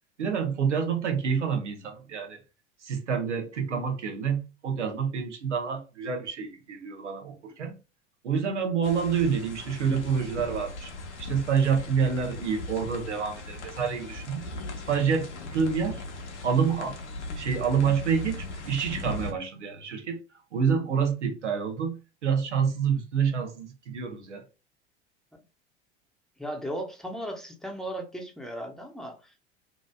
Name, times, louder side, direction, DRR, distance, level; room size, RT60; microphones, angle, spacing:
voice 1, 0.2-2.4 2.8-7.8 8.2-10.9 11.2-14.5 14.9-16.0 16.4-17.0 17.3-20.2 20.5-24.4, right 6 dB, 85° right, 0.8 m, -28 dB
sound 1, 8.8-19.3, left 2 dB, 85° left, 0.8 m, -38 dB
voice 2, 26.4-29.5, equal, ahead, 0.8 m, -36 dB
2.9 x 2.6 x 2.2 m
hypercardioid pair, 80°, 34 cm